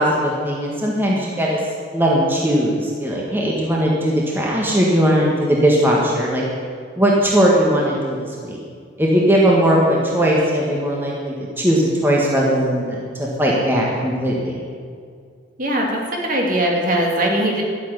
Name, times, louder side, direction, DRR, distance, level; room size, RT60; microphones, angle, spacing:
voice 1, 0.0-1.6 1.9-6.4 7.0-8.6 9.0-14.6, equal, 10° right, -3 dB, 1.8 m, -18 dB
voice 2, 15.6-17.6, right 1 dB, 45° right, 0 dB, 2.5 m, -20 dB
13.0 x 7.6 x 10.0 m, 2.1 s
head